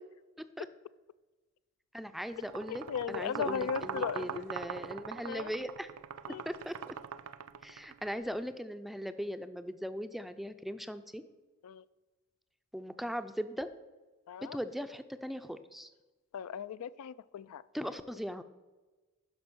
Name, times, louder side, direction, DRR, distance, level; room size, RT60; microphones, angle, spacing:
voice 1, 1.9-5.9 6.5-6.9 7.6-11.2 12.7-13.8 14.5-15.9 17.7-18.4, equal, ahead, 10 dB, 0.4 m, -39 dB
sound 1, 2.4-8.1, right 7 dB, 75° right, 0.5 m, -42 dB
voice 2, 2.7-4.5 5.2-5.5 6.3-6.4 11.6-11.8 14.3-14.6 16.3-17.6, left 7 dB, 80° left, 16 dB, 0.3 m, -37 dB
12.0 x 5.1 x 6.0 m, 1.2 s
head